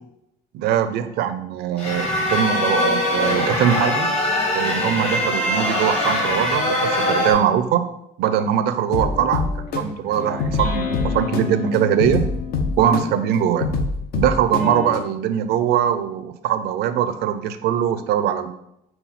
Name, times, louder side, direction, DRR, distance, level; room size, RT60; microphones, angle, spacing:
voice 1, 0.5-4.1 4.5-7.8 8.2-12.2 12.8-13.7 14.2-18.5, right 9 dB, 75° right, 10 dB, 0.4 m, -21 dB
sound 1, 1.8-7.3, left 1 dB, 40° left, 1.5 m, -22 dB
sound 2, 8.9-15.0, left 4 dB, 65° left, 0.7 m, -25 dB
5.4 x 2.3 x 4.1 m, 0.79 s
cardioid pair, 110°, 17 cm